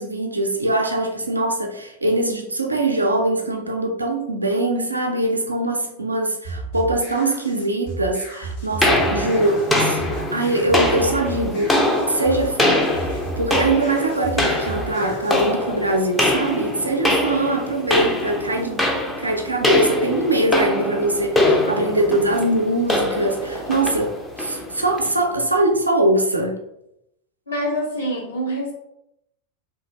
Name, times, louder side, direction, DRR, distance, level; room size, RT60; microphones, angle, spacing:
voice 1, 0.0-10.0 10.3-11.8 12.1-18.9 19.2-26.6, right 1 dB, 80° right, 3 dB, 0.4 m, -22 dB
sound 1, 6.4-15.5, right 3 dB, 55° left, 1.1 m, -33 dB
sound 2, 8.8-25.2, left 1 dB, 10° left, 0.4 m, -23 dB
voice 2, 27.5-28.7, equal, 75° left, -3 dB, 0.9 m, -25 dB
2.9 x 2.4 x 2.3 m, 0.82 s
figure-of-eight pair, 90°, 0 cm